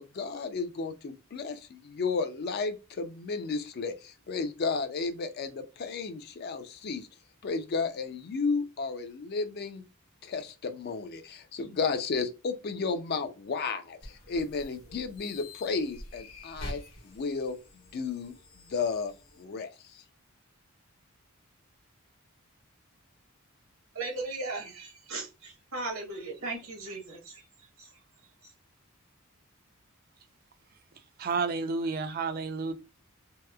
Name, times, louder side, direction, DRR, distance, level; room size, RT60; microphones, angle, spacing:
voice 1, 0.0-7.1 7.4-9.8 10.2-17.6 17.9-18.3 18.7-20.0, left 4 dB, 45° left, 0.4 m, -33 dB
sound 1, 14.0-19.4, left 1 dB, 65° left, 0.9 m, -46 dB
voice 2, 23.9-27.9 28.4-28.5, right 3 dB, 70° right, 0.9 m, -38 dB
voice 3, 31.2-32.7, right 4 dB, 45° right, 0.4 m, -30 dB
2.8 x 2.0 x 2.2 m
head